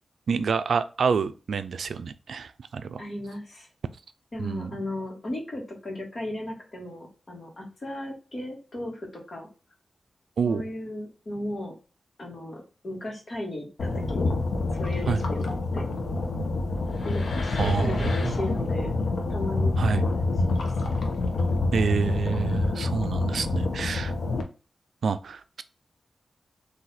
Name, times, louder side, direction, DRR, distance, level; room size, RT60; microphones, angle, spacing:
voice 1, 0.3-3.0 4.4-4.7 10.4-10.6 15.1-15.2 17.6-18.7 19.8-20.0 21.7-24.1 25.0-25.6, right 5 dB, 85° right, 12 dB, 0.4 m, -27 dB
voice 2, 3.0-3.7 4.3-9.5 10.5-11.7 12.2-14.3 14.8-15.9 17.0-18.9 19.3-20.7, left 1 dB, 40° left, 0 dB, 1.5 m, -36 dB
sound 1, 13.8-24.4, left 3 dB, 85° left, 0.9 m, -27 dB
4.0 x 2.7 x 4.1 m, 0.34 s
wide cardioid pair, 170°, 0 cm